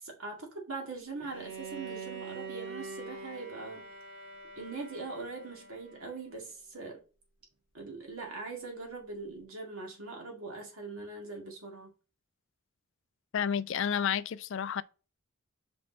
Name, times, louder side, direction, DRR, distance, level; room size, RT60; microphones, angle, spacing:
voice 1, 0.0-3.8 4.6-7.0 7.7-11.9, right 3 dB, 70° right, 2.1 m, -42 dB
Bowed string instrument, 1.2-6.2, right 4 dB, 50° right, 2.2 m, -44 dB
voice 2, 13.3-14.8, left 8 dB, 60° left, 0.3 m, -30 dB
5.6 x 5.3 x 3.9 m
head